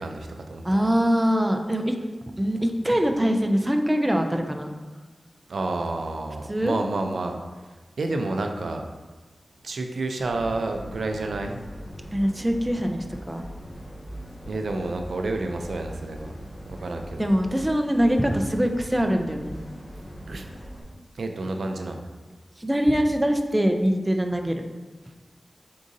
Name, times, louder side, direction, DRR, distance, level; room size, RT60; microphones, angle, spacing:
voice 1, 0.0-0.8 5.5-7.4 8.0-8.8 9.6-11.6 14.5-16.3 16.7-17.3 20.3-20.5 21.1-22.0, right 2 dB, 80° right, 4 dB, 0.4 m, -30 dB
voice 2, 0.6-2.0 2.4-4.7 6.5-6.8 12.1-13.4 17.2-19.6 22.6-24.6, equal, 15° right, 4 dB, 0.3 m, -23 dB
sound 1, 10.2-20.8, equal, 25° left, 1.5 m, -41 dB
5.0 x 3.7 x 2.6 m, 1.3 s
wide cardioid pair, 115°, 0 cm